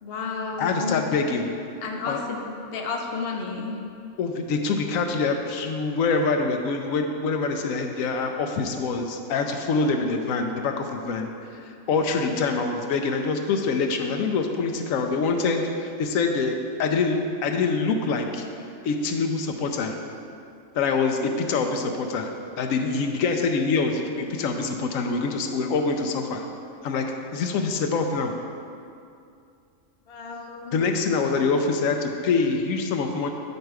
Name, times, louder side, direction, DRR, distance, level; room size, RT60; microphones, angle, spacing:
voice 1, 0.0-1.0 1.8-2.4 2.7-3.8 30.1-30.8, left 4 dB, 55° left, 1 dB, 0.9 m, -31 dB
voice 2, 0.6-1.5 2.1-2.2 4.2-18.5 18.8-20.0 20.7-26.4 26.8-27.0 27.3-28.3 30.7-33.3, left 4 dB, 85° left, 4 dB, 1.0 m, -25 dB
7.7 x 5.4 x 4.6 m, 2.5 s
omnidirectional pair, 1.4 m